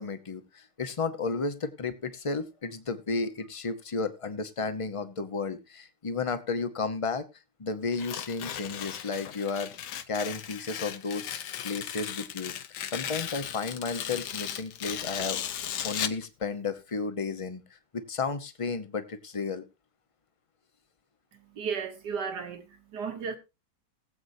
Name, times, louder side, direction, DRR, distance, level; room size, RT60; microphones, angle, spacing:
voice 1, 0.0-7.2 7.6-9.7 10.1-12.5 12.9-15.4 15.8-19.6, left 4 dB, 25° left, 0.7 m, -33 dB
Tearing, 7.9-16.3, left 10 dB, 80° left, 1.4 m, -36 dB
voice 2, 21.3-23.4, right 6 dB, 70° right, 2.0 m, -35 dB
20.5 x 7.9 x 2.7 m
omnidirectional pair, 1.8 m